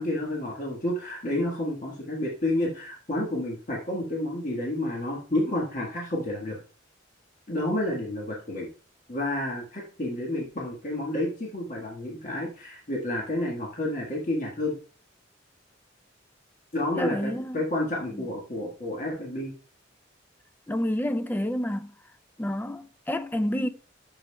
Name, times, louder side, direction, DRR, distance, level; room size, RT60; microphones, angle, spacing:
voice 1, 0.0-6.6 7.5-8.7 9.1-14.7 16.7-19.5, left 1 dB, 45° left, 1.5 m, -30 dB
voice 2, 17.0-17.6 18.1-18.2 20.7-21.9 22.4-23.7, left 1 dB, 10° left, 0.4 m, -29 dB
11.5 x 6.9 x 2.2 m
head